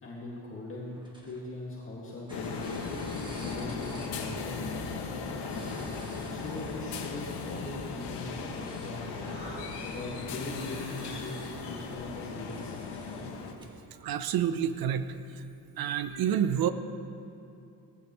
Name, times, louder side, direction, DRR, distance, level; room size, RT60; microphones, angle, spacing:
voice 1, 0.0-1.0 1.2-2.7 3.2-4.9 5.5-9.1 9.8-13.2, left 2 dB, 30° left, -6 dB, 2.1 m, -41 dB
sound 1, 0.9-1.9 2.3-4.3 5.3-7.3 8.4-9.0 9.5-10.3 10.7-11.5 12.5-14.0, right 1 dB, 10° right, 1.3 m, -52 dB
sound 2, 2.3-13.5, left 4 dB, 80° left, 1.7 m, -37 dB
Human voice, 8.4-13.6, right 1 dB, 30° right, 3.7 m, -50 dB
voice 2, 14.0-15.5 15.8-16.7, right 9 dB, 60° right, 11 dB, 0.7 m, -29 dB
19.0 x 15.5 x 3.1 m, 2.6 s
cardioid pair, 155°, 40 cm